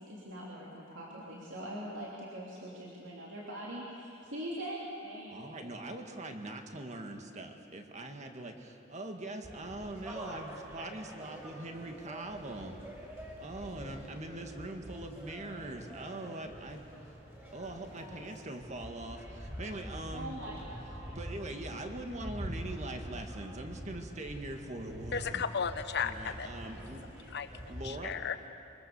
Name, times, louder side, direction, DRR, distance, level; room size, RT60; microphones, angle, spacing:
voice 1, 0.0-5.9 17.9-18.2 20.1-21.2 26.6-26.9 27.1-27.3, right 1 dB, 65° right, -5 dB, 3.4 m, -43 dB
voice 2, 5.3-12.8 13.4-16.9 17.5-20.3 21.1-25.4 26.0-27.0 27.7-28.2, right 2 dB, 35° right, 4 dB, 1.9 m, -42 dB
sound 1, 9.4-27.9, equal, 15° right, 6.5 m, -46 dB
voice 3, 25.1-26.5 27.3-27.5 27.8-28.5, left 6 dB, 60° left, 10 dB, 1.1 m, -34 dB
25.0 x 23.5 x 7.1 m, 2.6 s
head